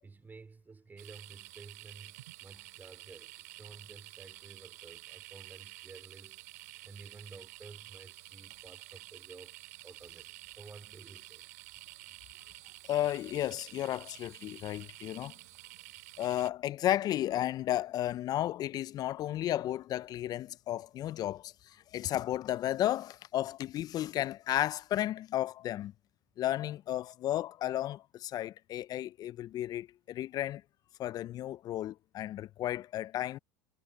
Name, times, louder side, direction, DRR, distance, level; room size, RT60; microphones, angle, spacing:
voice 1, 0.0-11.5, right 4 dB, 20° right, 4.8 m, -53 dB
sound 1, 1.0-16.5, right 21 dB, 65° right, 3.4 m, -50 dB
voice 2, 12.9-15.3 16.2-25.9 26.4-30.6 31.0-33.4, left 13 dB, 40° left, 0.8 m, -33 dB
hypercardioid pair, 80°, 10 cm